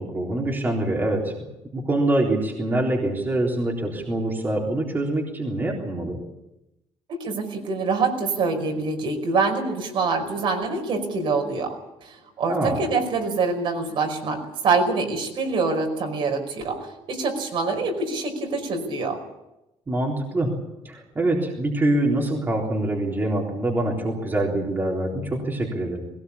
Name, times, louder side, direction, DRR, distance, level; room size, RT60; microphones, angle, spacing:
voice 1, 0.0-1.3 1.7-6.2 12.5-12.8 19.9-20.5 20.8-26.0, right 1 dB, 20° right, -2 dB, 3.7 m, -25 dB
voice 2, 7.1-11.7 12.0-19.2, right 4 dB, 55° right, 3 dB, 5.2 m, -25 dB
21.0 x 18.5 x 8.5 m, 0.92 s
cardioid pair, 175°, 10 cm